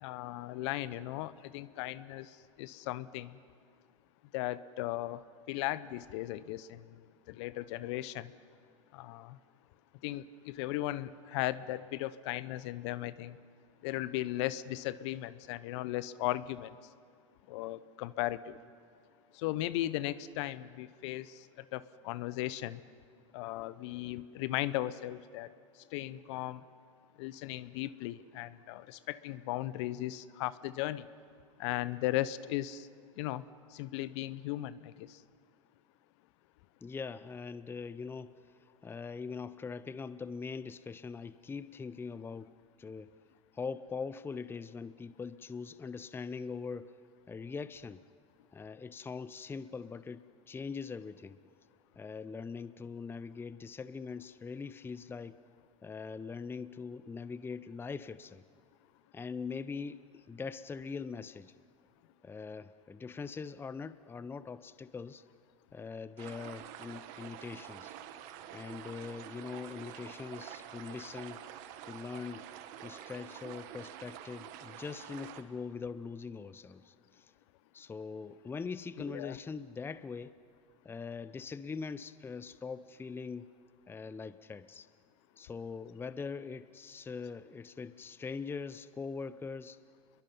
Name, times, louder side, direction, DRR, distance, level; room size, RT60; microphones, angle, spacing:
voice 1, 0.0-2.3 2.6-3.3 4.3-5.2 5.5-6.8 7.3-8.3 8.9-9.4 10.0-13.4 13.8-16.7 17.5-18.6 19.4-21.3 21.7-22.8 23.3-25.5 25.9-26.6 27.2-31.1 31.6-32.9 33.2-33.4 33.7-35.1 79.1-79.4, left 15 dB, 60° left, 16 dB, 0.8 m, -36 dB
voice 2, 36.8-42.5 42.8-43.1 43.5-47.0 47.3-48.0 48.5-51.4 52.0-55.4 55.8-58.4 59.1-61.5 62.2-65.2 65.7-67.9 68.5-71.4 71.8-72.4 72.8-77.3 77.7-80.3 80.8-83.5 83.9-84.9 85.4-89.8, left 5 dB, 15° left, 15 dB, 0.6 m, -42 dB
sound 1, 66.2-75.4, right 11 dB, 55° right, 1.5 m, -48 dB
29.0 x 22.5 x 5.5 m, 2.2 s
hypercardioid pair, 95°, 17 cm